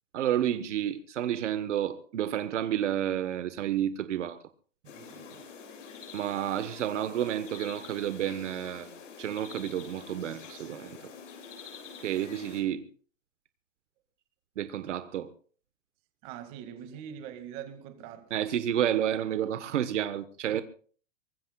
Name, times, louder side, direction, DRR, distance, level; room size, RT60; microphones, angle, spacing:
voice 1, 0.1-4.4 6.1-11.0 12.0-12.9 14.6-15.3 18.3-20.6, right 11 dB, 70° right, 1.2 m, -30 dB
sound 1, 4.8-12.6, left 5 dB, 75° left, 7.7 m, -46 dB
voice 2, 4.8-5.5 16.2-18.4, right 9 dB, 30° right, 2.1 m, -43 dB
23.5 x 20.0 x 2.3 m
hypercardioid pair, 170°, 38 cm